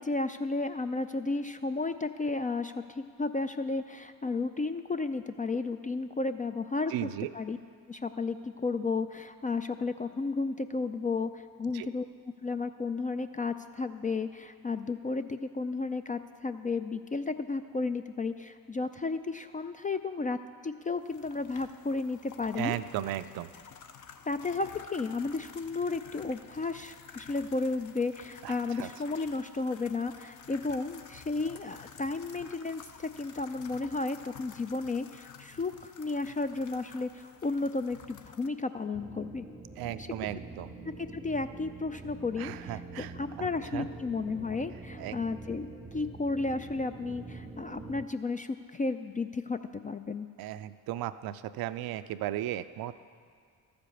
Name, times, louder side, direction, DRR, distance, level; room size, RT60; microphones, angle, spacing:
voice 1, 0.0-7.6 7.9-12.1 12.4-20.4 20.6-22.8 24.3-39.5 40.0-40.1 41.0-42.7 43.0-49.6 49.8-50.3, left 3 dB, 20° left, 9 dB, 0.3 m, -33 dB
voice 2, 6.9-7.3 11.7-11.9 22.5-23.5 28.4-28.9 39.8-40.7 42.4-43.9 45.0-45.2 50.4-52.9, right 13 dB, 60° right, 13 dB, 0.5 m, -36 dB
sound 1, 21.0-38.5, left 7 dB, 45° left, 0.8 m, -51 dB
sound 2, 38.9-48.1, right 3 dB, 15° right, 0.7 m, -45 dB
13.0 x 5.1 x 7.0 m, 2.1 s
hypercardioid pair, 50°, 41 cm